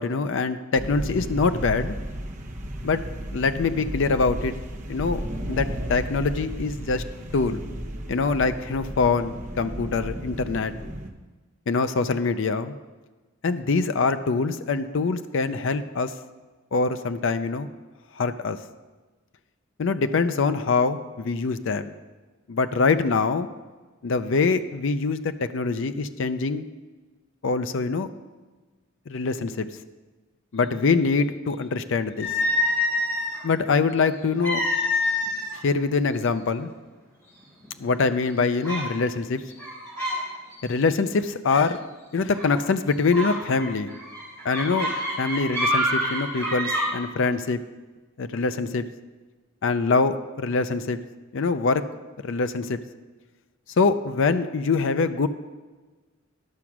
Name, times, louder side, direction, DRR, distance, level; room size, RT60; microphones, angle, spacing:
voice 1, 0.0-2.0 2.8-3.0 3.3-4.5 4.9-5.2 5.5-7.0 7.3-7.6 8.1-10.7 11.7-12.8 13.4-16.1 16.7-17.7 18.2-18.6 19.8-21.9 22.5-23.5 24.0-26.7 27.4-28.1 29.1-29.7 30.5-32.3 33.4-34.6 35.6-36.7 37.8-39.4 40.6-41.8 42.1-43.9 44.4-44.9 45.2-47.6 48.2-48.8 49.6-51.0 51.3-51.8 52.2-52.8 53.8-55.3, left 4 dB, 60° left, 11 dB, 0.5 m, -24 dB
sound 1, 0.7-11.1, equal, 35° right, 0.9 m, -34 dB
sound 2, 32.2-33.4 34.4-35.6 35.9-36.1 36.8-36.9 37.4-37.9 38.6-38.9 39.5-40.2 40.5-40.8 42.3-42.6 43.1-46.8, left 1 dB, 15° left, 3.7 m, -26 dB
11.5 x 6.0 x 6.0 m, 1.3 s
head